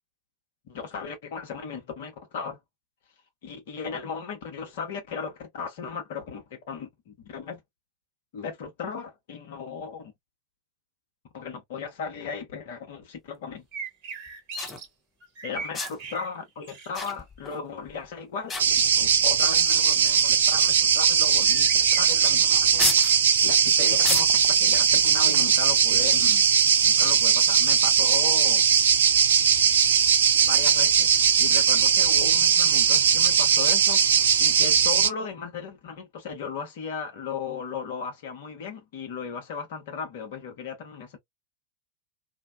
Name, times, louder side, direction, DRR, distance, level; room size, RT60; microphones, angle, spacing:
voice 1, 0.7-2.6 3.4-7.6 8.3-10.1 11.3-13.6 15.4-21.7 22.0-23.0 23.4-26.5 26.8-28.7 30.4-31.1 31.4-34.0 34.4-41.2, left 6 dB, 55° left, 1.0 m, -36 dB
sound 1, 13.2-13.3 14.3-14.4 14.6-14.8 15.7-16.1 16.9-17.6 17.9-18.1 18.5-19.1 19.9-20.0 21.2-21.5 21.8-21.9 22.8-23.2 24.0-24.5 25.3-25.6, left 4 dB, 20° left, 0.5 m, -32 dB
sound 2, 13.7-14.9 15.2-16.3 16.6-17.1 21.4-22.3, right 4 dB, 45° right, 1.0 m, -38 dB
sound 3, 18.6-35.1, right 7 dB, 65° right, 0.3 m, -20 dB
2.6 x 2.1 x 2.3 m
figure-of-eight pair, 90°, 0 cm